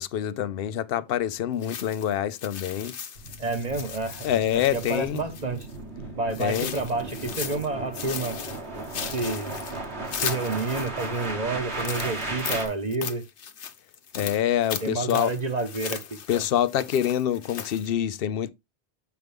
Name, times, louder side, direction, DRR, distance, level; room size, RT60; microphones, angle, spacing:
voice 1, 0.0-2.9 4.2-5.2 6.4-6.8 14.1-15.3 16.3-18.5, left 10 dB, 60° left, 0.8 m, -26 dB
sound 1, 1.6-5.8 6.3-7.7 7.9-11.3 11.7-17.9, left 7 dB, 85° left, 1.2 m, -37 dB
sound 2, 3.2-12.7, right 2 dB, 75° right, 2.1 m, -36 dB
voice 2, 3.4-4.3 4.5-5.7 6.2-8.4 9.1-9.5 10.2-13.2 14.8-16.4, right 3 dB, 40° right, 1.2 m, -29 dB
8.0 x 4.8 x 3.4 m
omnidirectional pair, 1.1 m